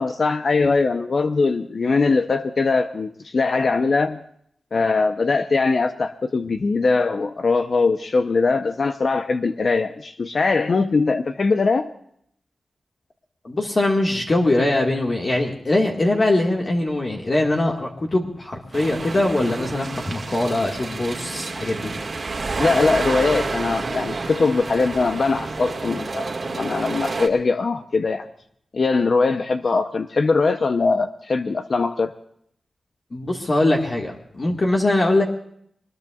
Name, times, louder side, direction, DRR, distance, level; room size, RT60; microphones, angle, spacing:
voice 1, 0.0-4.2 4.7-11.9 22.6-28.3 28.7-32.1, left 4 dB, 50° left, 8 dB, 0.7 m, -21 dB
voice 2, 13.4-21.9 33.1-35.2, left 2 dB, 35° left, 0 dB, 1.7 m, -22 dB
sound 1, 18.7-27.3, right 3 dB, 45° right, 1.9 m, -29 dB
24.0 x 20.5 x 2.4 m, 0.67 s
wide cardioid pair, 135°, 0 cm